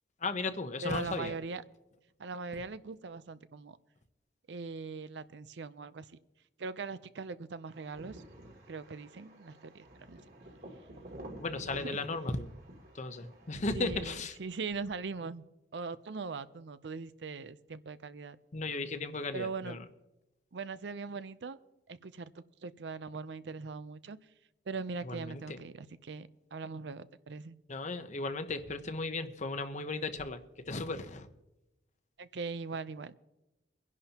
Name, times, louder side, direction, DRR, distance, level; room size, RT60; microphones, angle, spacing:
voice 1, 0.2-1.4 11.4-12.5 12.9-14.4 18.5-19.8 25.0-25.6 27.7-30.4 30.7-31.3, left 3 dB, 45° left, 9 dB, 0.9 m, -36 dB
voice 2, 0.8-1.6 2.2-3.8 4.5-6.1 6.6-8.2 8.7-10.2 11.8-12.0 13.7-15.4 15.7-18.4 19.3-19.8 20.5-21.6 21.9-24.2 24.7-27.6 32.2-33.1, right 4 dB, 80° right, 14 dB, 0.6 m, -40 dB
sound 1, 7.7-13.5, right 1 dB, 60° right, 2.8 m, -50 dB
22.5 x 11.0 x 2.9 m, 0.95 s
head